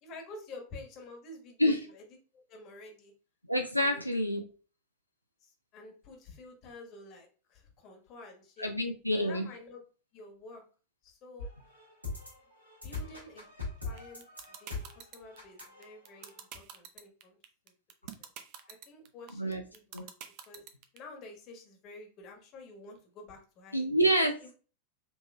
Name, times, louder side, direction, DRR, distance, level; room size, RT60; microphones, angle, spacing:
voice 1, 0.0-2.0 2.3-3.1 3.8-4.0 5.4-8.7 9.1-9.8 10.1-10.6 11.0-11.5 12.8-13.5 13.8-14.2 14.6-17.4 18.0-18.3 18.7-20.6 20.9-24.1 24.4-24.5, left 2 dB, 35° left, 2 dB, 1.2 m, -50 dB
voice 2, 3.5-4.4 8.6-9.5 19.4-19.6 19.9-20.0 23.7-24.5, equal, 90° left, 3 dB, 0.4 m, -27 dB
sound 1, 11.4-16.4, left 3 dB, 85° right, 1.5 m, -42 dB
sound 2, 14.0-21.0, right 10 dB, 45° right, 0.5 m, -45 dB
5.2 x 3.0 x 2.3 m, 0.38 s
figure-of-eight pair, 90°, 0 cm